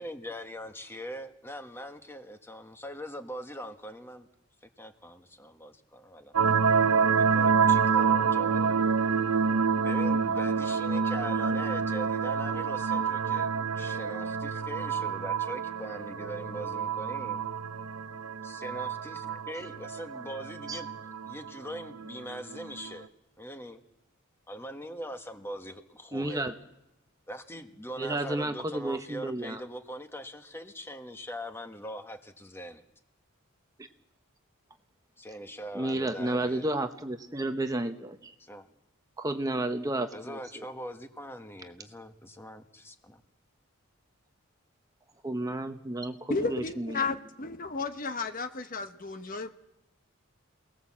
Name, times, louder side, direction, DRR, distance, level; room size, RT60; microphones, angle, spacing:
voice 1, 0.0-4.3 4.8-6.3 7.2-8.8 9.8-13.5 13.7-17.4 18.4-20.9 21.2-23.1 23.4-23.8 24.5-26.4 27.3-32.8 35.2-36.7 38.4-38.6 40.1-43.2, equal, 10° left, 7 dB, 1.3 m, -41 dB
sound 1, 6.3-22.9, right 5 dB, 85° right, 0.8 m, -28 dB
voice 2, 26.1-26.5 28.0-29.6 33.8-33.9 35.7-38.3 39.2-40.7 45.2-47.0, right 2 dB, 15° right, 7 dB, 0.9 m, -32 dB
voice 3, 46.3-49.5, left 4 dB, 40° left, 8 dB, 1.0 m, -33 dB
28.0 x 19.0 x 7.4 m, 0.92 s
head